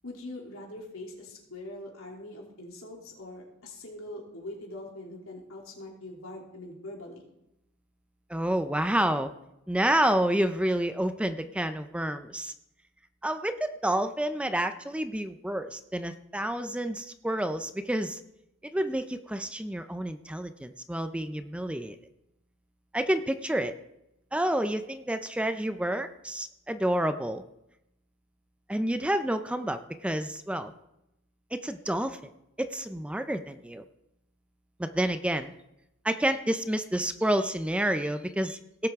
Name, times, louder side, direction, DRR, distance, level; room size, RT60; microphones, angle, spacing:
voice 1, 0.0-7.2, left 1 dB, 85° left, -1 dB, 3.0 m, -43 dB
voice 2, 8.3-9.3 9.7-12.5 13.2-18.2 18.6-22.0 22.9-23.7 24.3-27.4 28.7-30.7 31.5-32.2 32.6-33.8 34.8-35.5 36.0-38.9, right 1 dB, 5° right, 9 dB, 0.4 m, -29 dB
17.5 x 7.7 x 3.6 m, 0.84 s
head